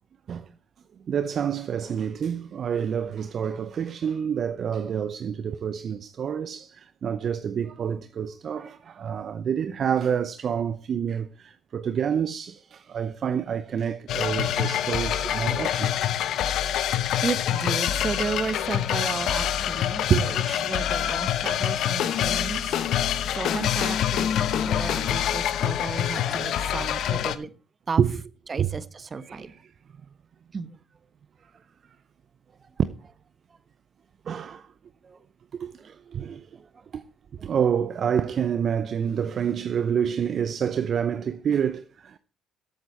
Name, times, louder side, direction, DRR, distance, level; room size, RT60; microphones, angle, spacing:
voice 1, 1.1-15.9 20.1-20.5 24.5-24.6 25.9-27.0 28.0-28.2 28.6-28.7 29.2-29.6 34.3-34.7 35.5-36.5 36.9-37.0 37.4-42.2, right 8 dB, 55° right, 0.7 m, -28 dB
sound 1, 14.1-27.4, left 10 dB, 65° left, 0.9 m, -26 dB
voice 2, 17.2-22.7 23.3-27.5 27.9-28.0 28.5-29.5 30.5-30.7 35.0-35.2, right 4 dB, 35° right, 1.1 m, -33 dB
13.5 x 8.0 x 4.4 m
hypercardioid pair, 60°, 0 cm